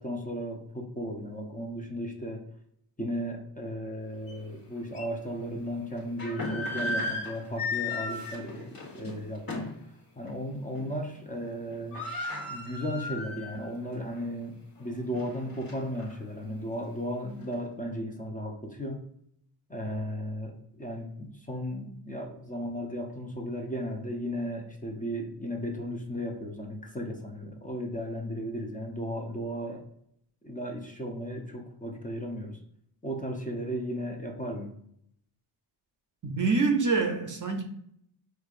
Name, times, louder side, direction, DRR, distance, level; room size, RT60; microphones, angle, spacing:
voice 1, 0.0-2.4 3.0-9.7 10.2-12.0 12.5-19.0 19.7-29.8 30.4-32.6 33.0-34.7, equal, 15° left, 2 dB, 0.7 m, -35 dB
sound 1, 4.3-4.4 4.9-5.1 6.0-9.8 10.2-10.4 10.7-11.2 11.4-11.5 11.7-13.7 14.1-14.2 14.8-16.1, left 2 dB, 45° left, 1.3 m, -35 dB
voice 2, 36.2-37.6, right 4 dB, 40° right, 4 dB, 0.6 m, -26 dB
4.4 x 2.4 x 2.5 m, 0.70 s
cardioid pair, 50°, 50 cm